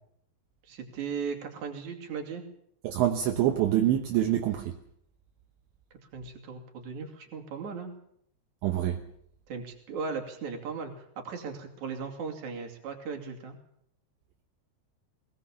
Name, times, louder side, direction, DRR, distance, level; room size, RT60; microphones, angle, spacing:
voice 1, 0.7-2.4 6.1-7.9 9.5-13.6, right 5 dB, 45° right, 3.4 m, -37 dB
voice 2, 2.8-4.7 8.6-9.0, right 12 dB, 75° right, 3.2 m, -25 dB
21.0 x 18.5 x 7.2 m
omnidirectional pair, 5.7 m